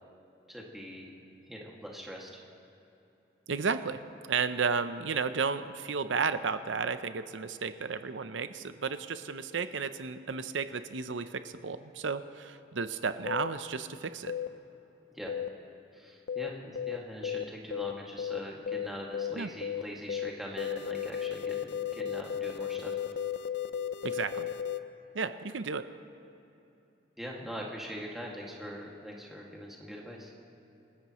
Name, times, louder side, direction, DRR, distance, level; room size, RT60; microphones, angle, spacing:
voice 1, 0.5-1.1 1.5-2.4 15.1-15.3 15.9-23.0 27.2-30.3, equal, ahead, -3 dB, 2.0 m, -42 dB
voice 2, 3.5-14.3 19.3-19.5 24.0-24.5 25.1-25.8, right 5 dB, 90° right, 11 dB, 0.7 m, -33 dB
sound 1, 13.3-13.5 14.3-14.5 15.3-15.5 16.3-16.5 16.7-17.0 17.2-17.4 17.7-17.9 18.2-18.4 18.7-18.9 19.1-19.3 19.6-19.8 20.1-20.3 20.6-24.8, left 9 dB, 65° left, 0.5 m, -34 dB
27.5 x 14.0 x 3.1 m, 3.0 s
head